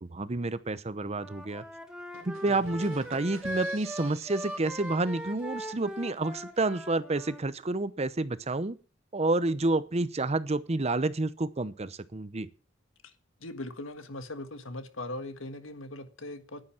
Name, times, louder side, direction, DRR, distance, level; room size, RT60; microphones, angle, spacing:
voice 1, 0.0-1.6 2.2-8.8 9.1-12.5, right 2 dB, 35° right, 0.8 m, -29 dB
Wind instrument woodwind instrument, 1.1-7.4, equal, 5° right, 1.6 m, -40 dB
sound 1, 2.1-5.9, right 3 dB, 85° right, 2.8 m, -50 dB
voice 2, 13.4-16.6, left 2 dB, 85° left, 1.6 m, -39 dB
10.5 x 9.8 x 7.3 m
head